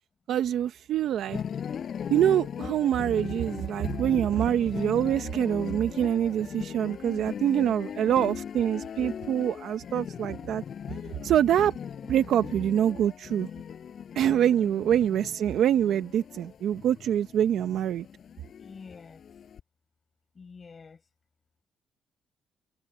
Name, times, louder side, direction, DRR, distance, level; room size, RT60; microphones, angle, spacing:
voice 1, 0.3-1.4 2.1-10.6 11.2-11.7 12.1-13.5 14.1-18.1, right 10 dB, 75° right, 0.9 m, -25 dB
sound 1, 1.3-19.6, left 8 dB, 55° left, 4.6 m, -39 dB
voice 2, 7.9-8.3 14.6-14.7 18.6-19.2 20.3-21.0, left 5 dB, 35° left, 5.9 m, -48 dB
cardioid pair, 90°, 0 cm